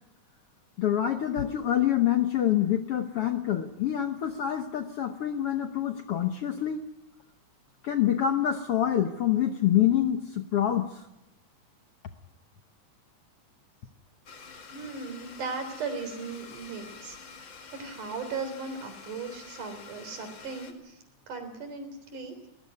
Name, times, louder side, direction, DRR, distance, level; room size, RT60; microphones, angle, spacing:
voice 1, 0.8-6.9 7.8-11.0, left 11 dB, 65° left, 6 dB, 1.5 m, -26 dB
Domestic sounds home sounds, 14.3-20.7, left 5 dB, 40° left, 2.3 m, -48 dB
voice 2, 14.7-17.5 17.7-22.5, right 4 dB, 70° right, 9 dB, 5.1 m, -37 dB
21.0 x 19.5 x 9.6 m, 0.93 s
omnidirectional pair, 3.7 m